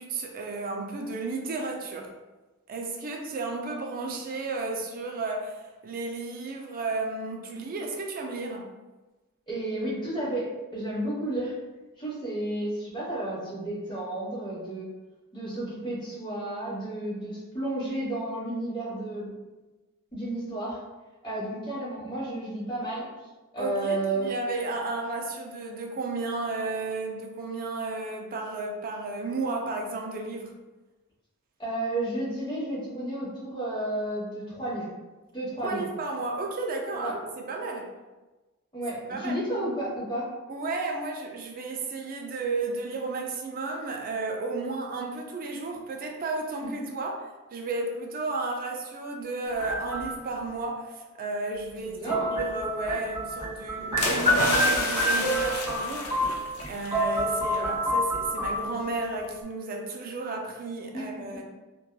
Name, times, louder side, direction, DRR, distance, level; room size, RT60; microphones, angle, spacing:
voice 1, 0.0-2.1 2.7-8.6 23.6-30.5 35.6-37.8 39.1-39.4 40.5-47.2 47.5-56.1 56.7-61.4, right 3 dB, 40° right, 2 dB, 0.4 m, -33 dB
voice 2, 9.5-11.5 12.0-14.9 15.3-19.3 20.1-20.8 21.2-23.1 23.5-24.3 31.6-34.9 35.3-35.8 37.0-37.1 38.7-40.3 46.6-46.9 51.8-52.3 60.9-61.2, right 1 dB, 20° left, -8 dB, 1.1 m, -32 dB
sound 1, 49.5-50.4 52.1-56.7 56.9-59.0, equal, 20° right, 0.9 m, -28 dB
sound 2, 54.0-57.0 57.3-57.6, left 2 dB, 80° left, 0.4 m, -30 dB
2.8 x 2.2 x 2.2 m, 1.2 s
head